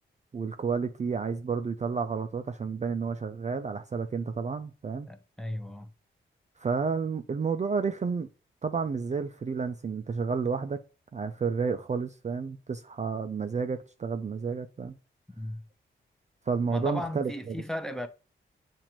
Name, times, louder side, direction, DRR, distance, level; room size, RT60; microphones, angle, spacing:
voice 1, 0.3-5.1 6.6-8.3 8.6-10.8 11.1-14.9 16.5-17.6, right 5 dB, 35° right, 0.4 m, -31 dB
voice 2, 5.1-5.9 15.3-15.6 16.7-18.1, left 1 dB, 5° left, 0.7 m, -36 dB
7.1 x 2.6 x 2.9 m
cardioid pair, 50°, 21 cm